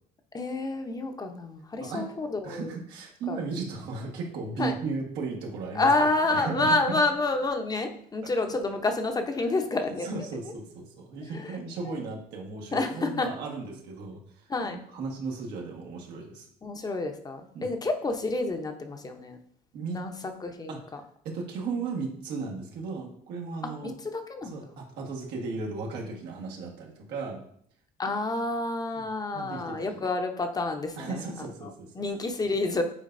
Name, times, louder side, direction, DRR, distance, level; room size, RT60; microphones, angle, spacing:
voice 1, 0.3-2.7 3.3-3.4 4.6-4.8 5.8-10.1 11.3-11.5 12.7-13.3 14.5-14.8 16.6-19.4 19.9-20.1 20.4-21.0 23.8-24.6 28.0-31.2 32.0-32.8, left 2 dB, 20° left, 6 dB, 0.7 m, -29 dB
voice 2, 1.8-2.1 2.4-7.0 8.2-8.3 9.4-9.5 9.8-16.5 17.5-17.7 19.7-20.0 20.7-20.8 21.2-23.9 24.4-27.4 28.9-29.1 29.3-30.1 31.0-32.0, right 4 dB, 85° right, 0 dB, 1.5 m, -36 dB
8.5 x 4.5 x 2.6 m, 0.66 s
cardioid pair, 110°, 17 cm